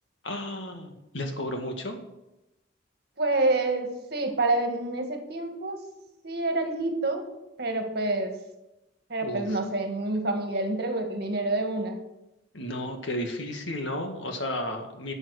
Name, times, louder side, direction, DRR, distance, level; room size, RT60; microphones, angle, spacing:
voice 1, 0.2-2.0 9.2-9.6 12.5-15.1, left 1 dB, 70° left, 4 dB, 1.9 m, -33 dB
voice 2, 3.2-5.8 6.2-7.3 7.6-8.3 9.1-12.0, right 2 dB, 50° right, 5 dB, 1.8 m, -27 dB
11.5 x 7.7 x 6.5 m, 0.95 s
head